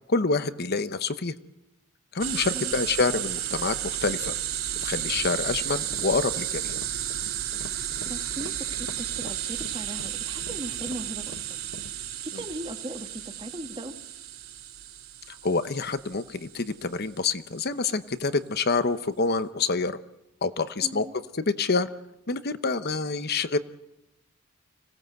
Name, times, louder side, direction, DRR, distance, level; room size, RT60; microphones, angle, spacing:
voice 1, 0.1-1.3 2.1-3.8 4.0-4.3 4.8-6.8 15.4-20.0 20.4-21.1 21.4-21.9 22.3-23.6, left 4 dB, 50° left, 12 dB, 0.9 m, -27 dB
sound 1, 2.2-16.7, right 11 dB, 85° right, 4.5 m, -33 dB
voice 2, 2.3-2.7 8.0-11.6 12.2-14.0 20.8-21.1, right 1 dB, 25° right, 6 dB, 1.5 m, -38 dB
sound 2, 5.5-12.0, left 3 dB, 75° left, 1.1 m, -45 dB
25.5 x 17.5 x 7.8 m, 0.95 s
head